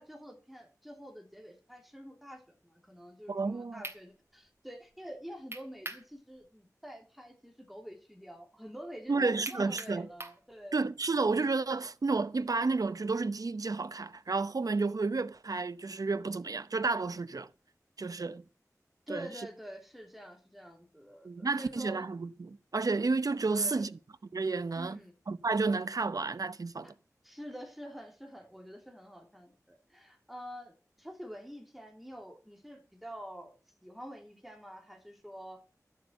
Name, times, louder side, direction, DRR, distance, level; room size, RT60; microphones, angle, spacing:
voice 1, 0.0-10.8 19.1-22.1 23.5-23.9 24.7-25.1 26.8-26.9 27.2-33.5 33.8-35.6, equal, ahead, 3.2 m, -47 dB
voice 2, 3.3-3.8 9.1-10.1 10.7-17.5 18.0-18.4 19.1-19.3 21.2-24.0 24.3-25.0 25.3-26.9, right 3 dB, 75° right, 0.8 m, -31 dB
sound 1, 3.8-4.0 5.5-6.1 6.5-6.6 9.4-10.4, right 2 dB, 40° right, 3.0 m, -41 dB
13.5 x 7.5 x 8.1 m
wide cardioid pair, 70°, 6 cm